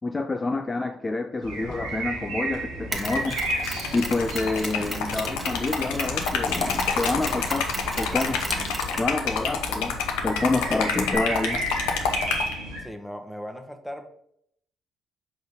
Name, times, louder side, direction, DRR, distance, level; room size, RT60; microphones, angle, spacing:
voice 1, 0.0-3.4 3.9-8.4 9.0-11.6, left 3 dB, 25° left, 6 dB, 0.4 m, -28 dB
sound 1, 1.4-12.8, right 1 dB, 85° right, 1.6 m, -34 dB
Mechanisms, 2.9-11.2, right 2 dB, 25° right, 1.1 m, -36 dB
Liquid, 3.1-12.5, left 6 dB, 80° left, 0.7 m, -28 dB
voice 2, 12.8-14.0, equal, ahead, 5 dB, 1.1 m, -37 dB
5.3 x 3.9 x 5.1 m, 0.70 s
hypercardioid pair, 55°, 0 cm